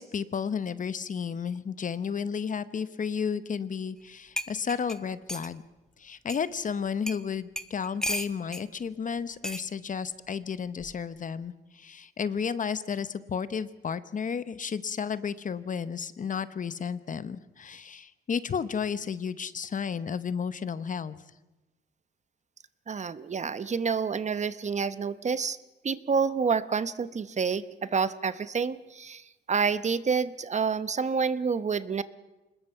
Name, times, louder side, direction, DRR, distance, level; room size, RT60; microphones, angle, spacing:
voice 1, 0.0-5.6 6.0-21.1, left 6 dB, 40° left, 14 dB, 1.0 m, -32 dB
sound 1, 4.0-4.1 4.4-5.5 6.3-6.4 7.1-7.2 7.6-8.6 9.4-9.7 10.8-11.1, equal, 5° left, 1.1 m, -34 dB
voice 2, 22.9-25.6 25.8-32.0, right 5 dB, 35° right, 14 dB, 0.9 m, -28 dB
25.0 x 21.0 x 5.7 m, 1.0 s
cardioid pair, 90°, 20 cm